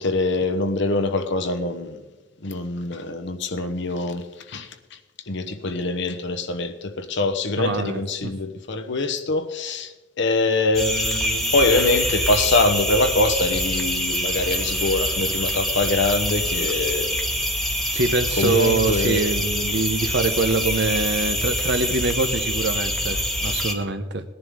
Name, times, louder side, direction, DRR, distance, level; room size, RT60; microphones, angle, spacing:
voice 1, 0.0-2.0 2.4-5.0 5.3-17.2 18.4-19.2, left 2 dB, 65° left, 9 dB, 1.0 m, -24 dB
voice 2, 7.6-8.3 17.9-24.2, right 3 dB, 60° right, 9 dB, 1.0 m, -24 dB
sound 1, 10.7-23.7, equal, ahead, 1.2 m, -25 dB
19.0 x 10.5 x 3.7 m, 1.1 s
head